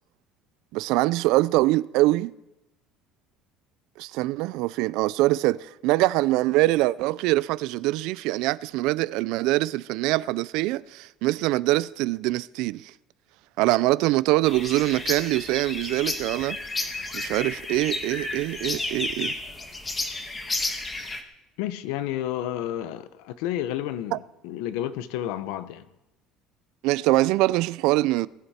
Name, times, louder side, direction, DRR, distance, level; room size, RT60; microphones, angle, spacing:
voice 1, 0.7-2.3 4.0-12.9 13.6-16.6 17.1-19.4 24.1-24.2 26.8-28.3, right 18 dB, 70° right, 0.4 m, -24 dB
sound 1, 14.4-21.2, left 2 dB, 15° left, 1.4 m, -32 dB
voice 2, 21.6-25.8, left 12 dB, 80° left, 0.9 m, -31 dB
20.0 x 11.5 x 4.3 m
cardioid pair, 155°, 0 cm